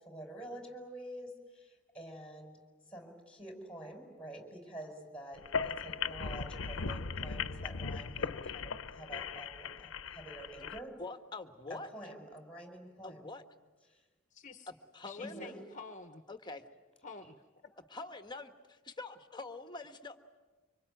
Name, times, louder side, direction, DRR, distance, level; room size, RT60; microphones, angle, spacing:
voice 1, 0.0-2.6 2.9-11.1 11.7-13.3 13.9-14.0 15.2-15.6, right 1 dB, 5° left, 4 dB, 5.2 m, -48 dB
sound 1, 5.4-10.8, left 5 dB, 65° left, 0.8 m, -38 dB
voice 2, 11.0-11.9 13.0-13.4 14.7-15.5 16.3-16.6 17.9-20.2, left 3 dB, 20° left, 7 dB, 1.4 m, -45 dB
voice 3, 14.3-14.7 15.0-16.2 17.0-17.4, left 4 dB, 40° left, 8 dB, 1.1 m, -49 dB
25.5 x 25.0 x 9.2 m, 1.3 s
head